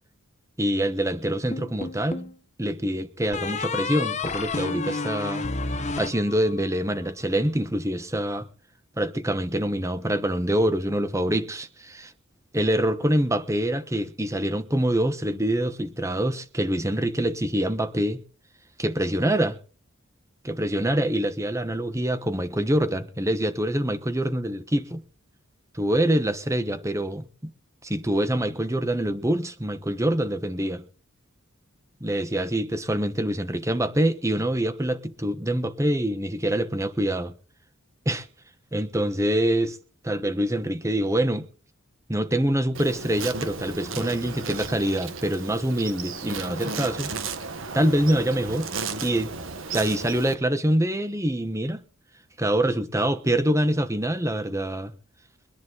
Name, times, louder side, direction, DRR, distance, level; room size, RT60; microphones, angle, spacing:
voice 1, 0.6-2.3 2.6-5.5 6.0-8.5 9.0-12.1 12.5-18.2 18.8-19.6 20.4-25.0 25.7-27.3 27.8-30.8 32.0-37.3 38.0-38.3 38.7-39.8 40.0-41.5 42.1-47.1 47.7-48.7 49.0-49.3 49.7-51.8 52.4-54.9, right 1 dB, 15° right, 1.1 m, -25 dB
sound 1, 1.5-2.4 3.3-6.8, left 4 dB, 35° left, 1.0 m, -30 dB
Insect, 42.7-50.3, right 4 dB, 65° right, 1.5 m, -34 dB
23.0 x 10.5 x 4.0 m
head